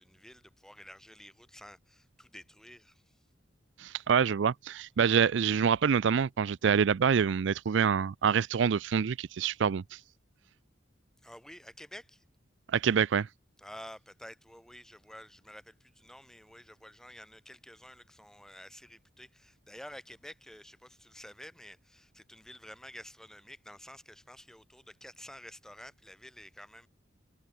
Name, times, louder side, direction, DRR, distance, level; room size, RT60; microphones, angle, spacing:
voice 1, 0.0-3.2 11.2-12.2 13.6-26.9, equal, 5° left, 6.2 m, -50 dB
voice 2, 3.8-10.0 12.7-13.3, right 7 dB, 70° right, 0.4 m, -26 dB
head